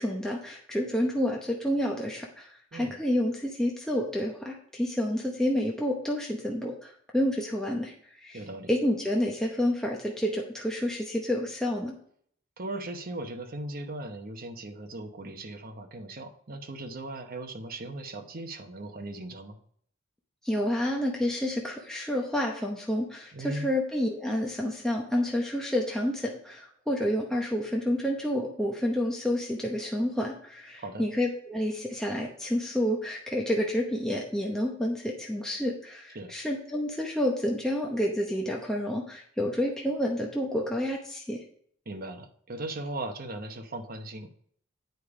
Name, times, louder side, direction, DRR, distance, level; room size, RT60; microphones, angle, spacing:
voice 1, 0.0-8.4 8.7-11.9 20.4-41.4, left 1 dB, 5° left, -2 dB, 0.8 m, -29 dB
voice 2, 8.3-8.7 12.6-19.6 23.3-23.7 30.8-31.0 36.1-36.3 41.9-44.3, right 2 dB, 45° right, 6 dB, 0.9 m, -38 dB
9.3 x 5.0 x 4.8 m, 0.62 s
head